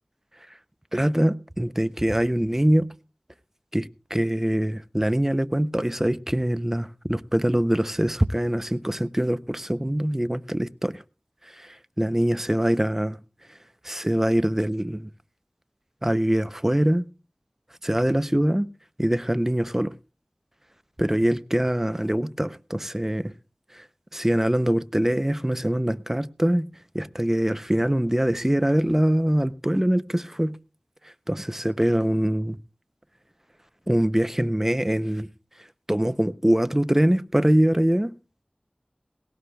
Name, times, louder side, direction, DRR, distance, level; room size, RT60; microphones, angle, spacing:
voice 1, 0.9-2.9 3.7-11.0 11.4-13.2 13.8-15.1 16.0-17.0 17.8-18.7 19.0-19.9 21.0-23.3 23.7-23.9 24.1-26.7 26.9-30.6 31.0-32.6 33.9-35.3 35.9-38.1, right 1 dB, 15° right, 0.6 m, -23 dB
18.0 x 18.0 x 2.3 m
wide cardioid pair, 45°, 2 cm